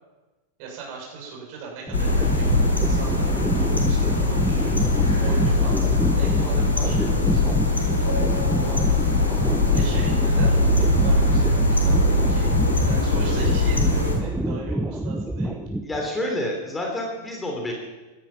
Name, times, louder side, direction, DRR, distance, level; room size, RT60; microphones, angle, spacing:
voice 1, 0.6-4.8 5.2-9.0 9.7-12.5 12.8-15.7, right 5 dB, 45° right, -2 dB, 6.6 m, -39 dB
sound 1, 1.9-14.2, left 2 dB, 80° left, 3.7 m, -21 dB
sound 2, 1.9-16.1, right 1 dB, 5° right, 0.9 m, -27 dB
voice 2, 15.8-17.7, left 1 dB, 10° left, 0 dB, 3.4 m, -28 dB
16.5 x 13.0 x 5.9 m, 1.2 s
figure-of-eight pair, 90°, 0 cm